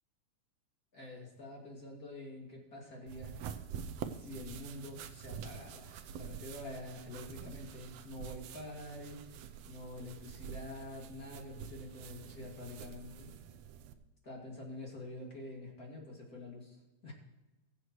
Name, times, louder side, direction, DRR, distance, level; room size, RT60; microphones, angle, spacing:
voice 1, 0.9-3.4 4.1-13.4 14.2-17.1, left 1 dB, 30° left, -2 dB, 2.7 m, -47 dB
sound 1, 3.1-13.9, right 8 dB, 75° right, 1.7 m, -47 dB
21.5 x 7.9 x 3.1 m, 1.1 s
omnidirectional pair, 3.3 m